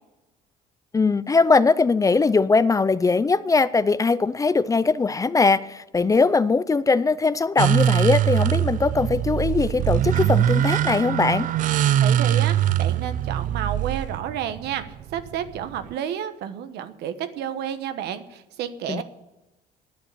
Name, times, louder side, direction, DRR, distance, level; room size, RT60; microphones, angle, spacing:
voice 1, 0.9-11.5 18.9-19.0, left 4 dB, 20° left, 0.5 m, -20 dB
sound 1, 7.6-15.9, right 11 dB, 50° right, 0.4 m, -22 dB
voice 2, 12.0-14.8 15.1-19.0, right 9 dB, 80° right, 1.2 m, -31 dB
10.5 x 9.2 x 9.3 m
cardioid pair, 110°, 17 cm